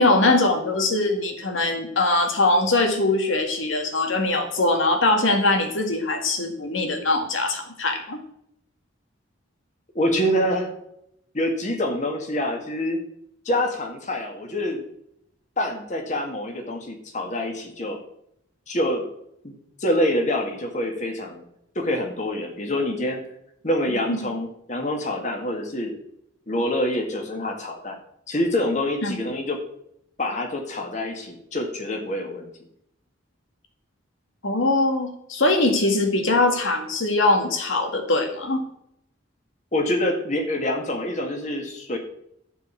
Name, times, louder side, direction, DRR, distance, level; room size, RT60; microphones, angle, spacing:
voice 1, 0.0-8.2 24.1-24.2 29.0-29.1 34.4-38.7, left 2 dB, 90° left, 4 dB, 1.7 m, -22 dB
voice 2, 10.0-10.7 11.3-13.0 13.5-14.8 15.6-18.0 18.7-19.0 19.4-19.5 19.8-21.4 21.8-23.2 23.6-25.9 26.5-28.0 28.3-29.6 30.2-32.5 39.7-42.0, left 1 dB, 40° left, 2 dB, 2.0 m, -26 dB
12.5 x 4.7 x 8.3 m, 0.74 s
head